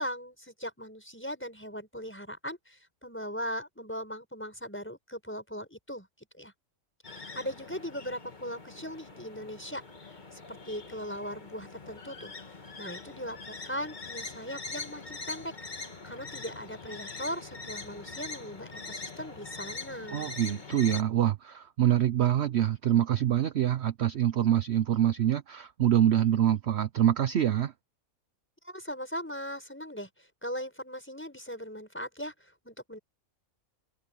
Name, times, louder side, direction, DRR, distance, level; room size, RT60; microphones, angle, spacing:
voice 1, 0.0-6.1 6.4-6.5 7.1-9.8 10.3-12.3 12.8-15.5 16.0-20.3 28.6-33.0, equal, 10° left, 5.9 m, -39 dB
sound 1, 7.0-21.0, left 3 dB, 35° left, 1.8 m, -43 dB
voice 2, 20.1-27.7, right 11 dB, 55° right, 0.9 m, -25 dB
omnidirectional pair, 1.5 m